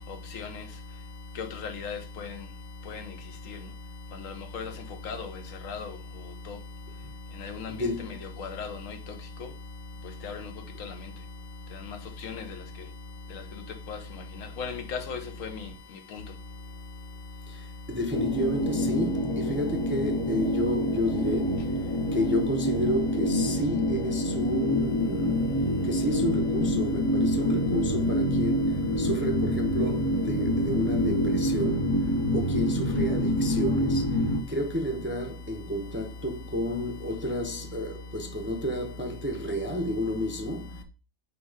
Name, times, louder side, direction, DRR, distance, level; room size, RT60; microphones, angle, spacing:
voice 1, 1.4-2.3 2.9-3.0 4.2-4.7 5.0-5.3 5.6-5.9 7.4-7.7 8.4-8.7 10.2-10.4 12.2-12.3 13.9-14.0 14.6-15.2, left 5 dB, 85° left, 1.2 m, -35 dB
voice 2, 7.7-8.2 17.5-17.6 17.9-21.8 22.1-32.0 32.3-34.1 34.5-40.8, equal, 10° right, 0.6 m, -31 dB
sound 1, 18.1-34.4, left 1 dB, 30° left, 0.6 m, -26 dB
4.7 x 4.2 x 4.7 m
omnidirectional pair, 1.4 m